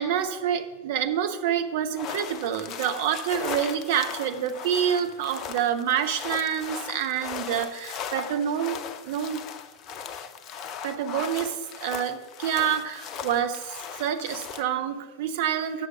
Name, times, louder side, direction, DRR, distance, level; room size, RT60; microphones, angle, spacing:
voice 1, 0.0-9.4 10.8-15.9, right 9 dB, 50° right, 8 dB, 0.8 m, -27 dB
sound 1, 2.0-14.6, left 7 dB, 35° left, 0.6 m, -38 dB
8.5 x 6.6 x 6.8 m, 1.3 s
figure-of-eight pair, 90°, 0 cm